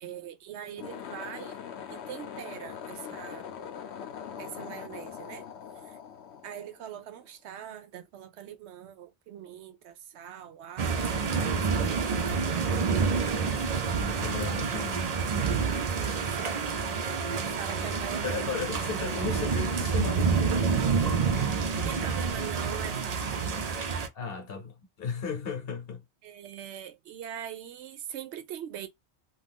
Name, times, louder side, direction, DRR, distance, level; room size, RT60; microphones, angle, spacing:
voice 1, 0.0-1.6 1.9-3.4 4.4-5.4 6.4-13.6 15.9-16.6 16.9-18.5 21.8-23.6 26.2-28.9, right 10 dB, 85° right, 0.9 m, -42 dB
sound 1, 0.7-7.2, left 8 dB, 85° left, 0.9 m, -42 dB
sound 2, 10.8-24.1, right 5 dB, 50° right, 0.5 m, -28 dB
voice 2, 14.0-15.4 18.2-20.9 24.1-26.0, left 6 dB, 65° left, 0.9 m, -36 dB
2.4 x 2.3 x 3.4 m
omnidirectional pair, 1.1 m